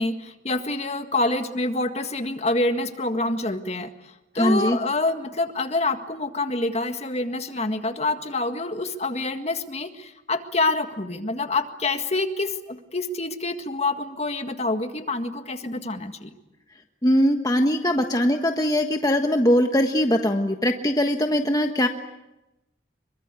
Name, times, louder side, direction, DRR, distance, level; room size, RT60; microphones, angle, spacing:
voice 1, 0.0-16.3, left 2 dB, 35° left, 7 dB, 1.9 m, -27 dB
voice 2, 4.4-4.8 17.0-21.9, equal, 20° left, 4 dB, 1.4 m, -21 dB
26.5 x 24.0 x 8.4 m, 0.95 s
head